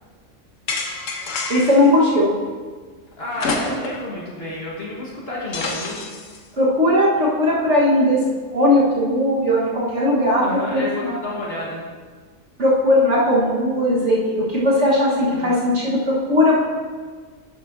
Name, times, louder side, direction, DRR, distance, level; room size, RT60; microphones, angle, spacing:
sound 1, 0.7-1.9 3.4-4.1 4.5-4.6 5.5-6.4, left 3 dB, 75° left, 1.3 m, -27 dB
voice 1, 1.5-2.3 6.6-8.2 8.5-11.1 12.6-16.6, left 1 dB, 60° right, -6 dB, 1.7 m, -18 dB
voice 2, 3.2-6.0 10.4-11.9 15.3-15.6, left 1 dB, 50° left, -5 dB, 1.7 m, -30 dB
12.0 x 8.3 x 2.6 m, 1.5 s
omnidirectional pair, 1.3 m